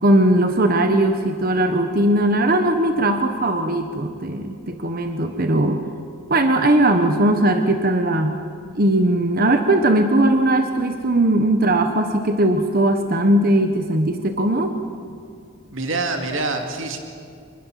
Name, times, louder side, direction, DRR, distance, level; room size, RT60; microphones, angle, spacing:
voice 1, 0.0-5.8 6.3-8.4 8.7-14.8, right 1 dB, 45° right, 6 dB, 1.2 m, -19 dB
voice 2, 15.7-17.0, right 3 dB, 70° right, 4 dB, 2.4 m, -25 dB
26.0 x 21.0 x 7.5 m, 2.4 s
head